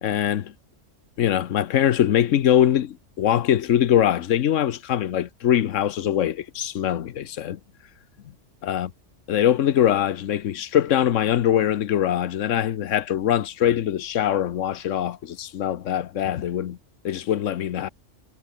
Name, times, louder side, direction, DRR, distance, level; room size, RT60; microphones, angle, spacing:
voice 1, 0.0-0.5 1.2-7.6 8.6-8.9 9.3-16.8 17.0-17.9, left 10 dB, 90° left, 1.2 m, -22 dB
omnidirectional pair, 1.3 m